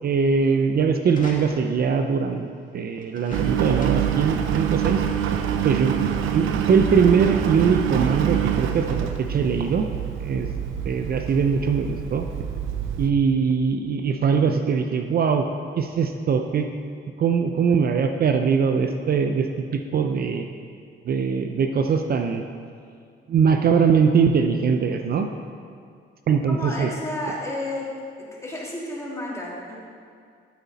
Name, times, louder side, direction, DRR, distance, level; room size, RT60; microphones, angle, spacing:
voice 1, 0.0-5.0 5.6-9.9 10.2-10.5 10.8-12.2 13.0-15.5 15.8-16.7 17.2-20.5 21.1-22.4 23.3-25.3 26.3-26.9, right 6 dB, 50° right, 6 dB, 0.6 m, -21 dB
sound 1, 1.1-1.9 3.0-4.2 4.6-4.7 5.0-5.5 6.3-6.4, left 2 dB, 40° left, 2.2 m, -44 dB
Engine, 3.3-13.1, right 9 dB, 85° right, 0.7 m, -26 dB
voice 2, 26.5-27.9 28.2-29.8, left 1 dB, 15° left, -5 dB, 3.0 m, -31 dB
13.0 x 8.4 x 4.1 m, 2.3 s
cardioid pair, 90°, 20 cm